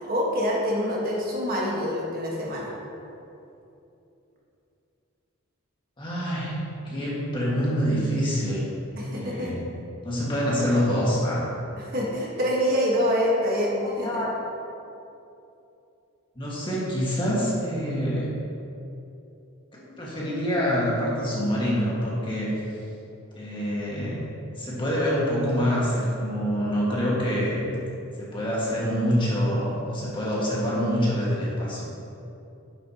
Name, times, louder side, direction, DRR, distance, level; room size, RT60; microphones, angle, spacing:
voice 1, 0.0-2.7 9.0-9.6 11.8-14.3, equal, 45° right, -4 dB, 1.4 m, -26 dB
voice 2, 6.0-8.7 9.0-9.6 10.0-11.4 13.8-14.3 16.3-18.3 19.7-22.5 23.3-24.2 24.5-27.7 28.2-31.8, equal, 25° left, -6 dB, 1.7 m, -26 dB
9.5 x 7.8 x 2.9 m, 2.8 s
head